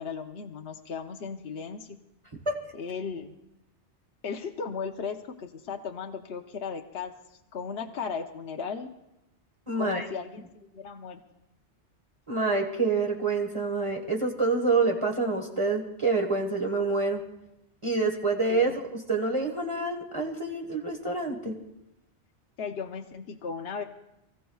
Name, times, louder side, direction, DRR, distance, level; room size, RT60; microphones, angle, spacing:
voice 1, 0.0-2.0 2.7-3.3 4.2-7.1 7.5-8.9 9.7-11.2 18.5-18.7 22.6-23.8, left 6 dB, 65° left, 3 dB, 1.0 m, -36 dB
voice 2, 9.7-10.1 12.3-17.2 17.8-21.6, right 3 dB, 25° right, 1 dB, 1.5 m, -27 dB
28.5 x 15.5 x 2.3 m, 0.88 s
omnidirectional pair, 1.2 m